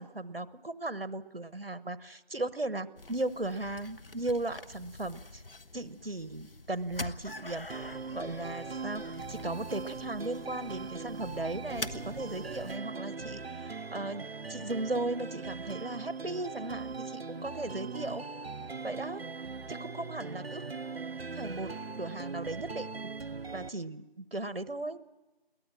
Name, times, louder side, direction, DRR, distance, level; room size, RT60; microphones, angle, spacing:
voice 1, 0.0-5.4 5.7-7.7 8.1-9.0 9.3-18.2 18.8-19.2 19.7-20.7 21.3-21.7 22.0-23.1 23.5-25.0, right 2 dB, 70° right, 15 dB, 1.2 m, -37 dB
sound 1, 3.0-12.8, left 2 dB, 70° left, 1.1 m, -45 dB
sound 2, 7.7-23.7, right 4 dB, 85° right, 0.7 m, -40 dB
22.0 x 18.5 x 7.5 m, 1.1 s
figure-of-eight pair, 175°, 30 cm